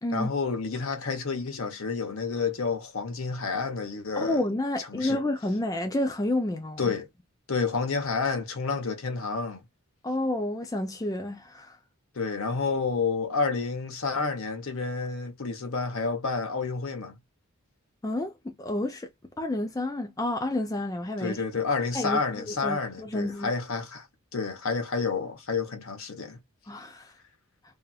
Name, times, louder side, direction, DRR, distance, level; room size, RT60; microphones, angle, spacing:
voice 1, 0.1-4.4 4.8-5.2 6.8-7.1 7.5-9.6 12.1-17.1 21.2-24.1 24.3-26.4, left 4 dB, 65° left, 0.9 m, -29 dB
voice 2, 4.2-6.9 10.0-11.8 18.0-19.1 19.4-21.4 21.9-23.5 26.7-27.1, left 1 dB, 15° left, 0.4 m, -30 dB
2.8 x 2.4 x 2.3 m
head